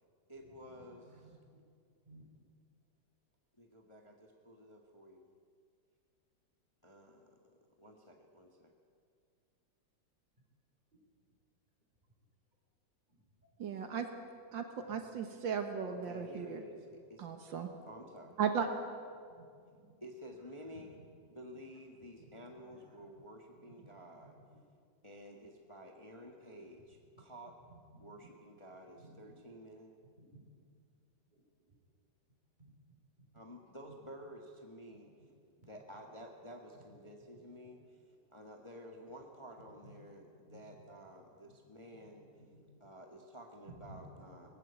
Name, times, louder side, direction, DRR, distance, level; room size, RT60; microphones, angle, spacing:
voice 1, 0.3-1.3 3.6-5.2 6.8-8.7 15.9-17.3 17.9-18.4 20.0-21.0 21.3-24.4 25.0-27.6 28.0-29.9 33.3-35.1 35.6-38.0 38.3-42.3 42.8-44.5, equal, 15° left, 1.4 m, -52 dB
voice 2, 1.1-1.6 2.1-2.2 19.3-19.9 22.2-23.0 23.8-24.0 28.0-28.3 29.0-29.4 30.2-30.4 31.3-31.4 32.6-32.7 33.8-33.9 35.2-35.3 35.6-35.7 39.8-40.1 40.4-40.8 41.5-41.6 42.2-42.8 43.7-44.5, right 1 dB, 20° right, 4.6 m, -58 dB
voice 3, 13.6-14.1 14.5-16.6 17.2-17.7 18.4-18.7, right 7 dB, 75° right, 2.0 m, -36 dB
19.0 x 15.5 x 9.0 m
omnidirectional pair, 2.1 m